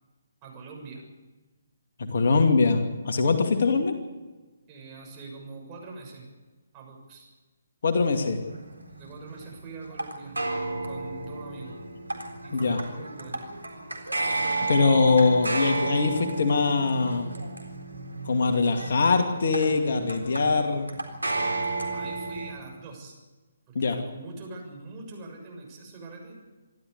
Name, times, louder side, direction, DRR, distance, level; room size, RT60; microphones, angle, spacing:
voice 1, 0.4-1.0 4.7-6.3 6.7-7.3 9.0-10.4 10.8-11.8 12.4-13.5 21.9-23.2 23.7-26.4, right 3 dB, 25° right, 0 dB, 7.0 m, -43 dB
voice 2, 2.0-3.9 7.8-8.4 12.5-12.8 14.7-17.3 18.3-20.9 23.7-24.0, left 4 dB, 55° left, 5 dB, 2.4 m, -22 dB
sound 1, 8.1-22.5, right 2 dB, 85° right, 3.8 m, -33 dB
27.0 x 12.5 x 8.3 m, 1.2 s
figure-of-eight pair, 140°, 0 cm